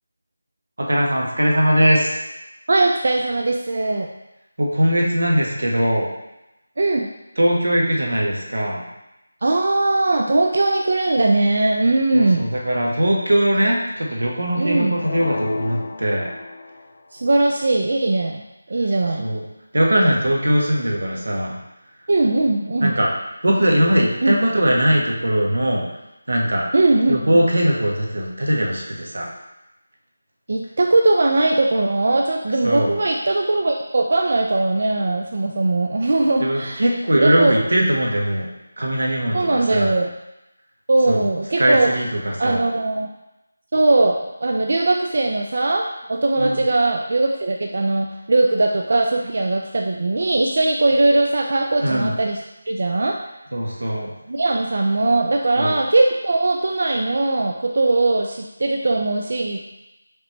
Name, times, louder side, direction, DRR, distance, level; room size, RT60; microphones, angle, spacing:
voice 1, 0.8-2.2 4.6-6.1 7.4-8.8 12.1-16.3 19.2-19.4 19.7-21.5 22.8-23.1 23.4-25.8 26.3-26.6 27.1-29.3 32.6-32.9 36.4-38.5 38.8-39.9 41.1-41.2 41.6-42.6 46.4-46.6 51.8-52.1 53.5-54.1 55.6-55.8, equal, 90° right, -1 dB, 1.1 m, -20 dB
voice 2, 2.7-4.1 6.8-7.1 9.4-12.5 14.6-15.0 17.1-18.4 18.7-19.3 22.1-22.9 24.2-24.4 26.7-27.2 30.5-37.5 39.3-40.1 40.9-41.9 42.4-43.1 43.7-52.4 52.7-53.2 54.3-59.7, right 2 dB, 50° right, 2 dB, 0.3 m, -20 dB
sound 1, 15.0-17.0, left 3 dB, 40° left, 0.4 m, -31 dB
5.0 x 3.2 x 3.0 m, 0.94 s
figure-of-eight pair, 175°, 0 cm